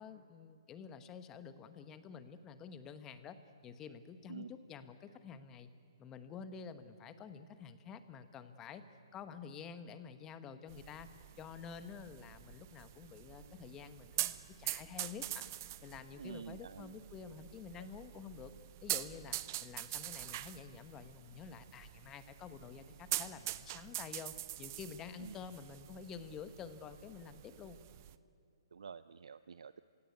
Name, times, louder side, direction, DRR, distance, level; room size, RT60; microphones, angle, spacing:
voice 1, 0.0-3.4 3.6-5.7 6.0-8.8 9.1-11.1 11.4-15.4 15.8-18.5 18.8-27.8, left 6 dB, 15° left, 11 dB, 1.0 m, -49 dB
sound 1, 10.7-28.1, right 15 dB, 35° right, 0.6 m, -44 dB
voice 2, 16.2-16.9 25.2-25.4 28.7-29.8, right 6 dB, 80° right, 13 dB, 0.6 m, -48 dB
28.5 x 17.0 x 9.5 m, 2.5 s
hypercardioid pair, 160°, 3 cm